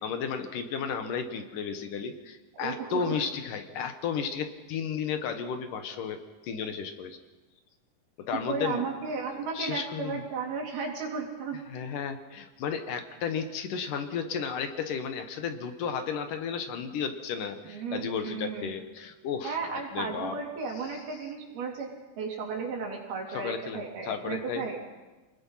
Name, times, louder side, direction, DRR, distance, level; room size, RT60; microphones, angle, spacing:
voice 1, 0.0-7.2 8.2-8.9 9.5-10.2 11.7-20.4 23.3-24.8, left 6 dB, 65° left, 7 dB, 2.8 m, -33 dB
voice 2, 2.5-3.2 8.3-11.6 17.7-18.7 19.4-24.8, right 5 dB, 90° right, 0 dB, 5.4 m, -34 dB
29.0 x 20.5 x 5.7 m, 1.2 s
omnidirectional pair, 4.2 m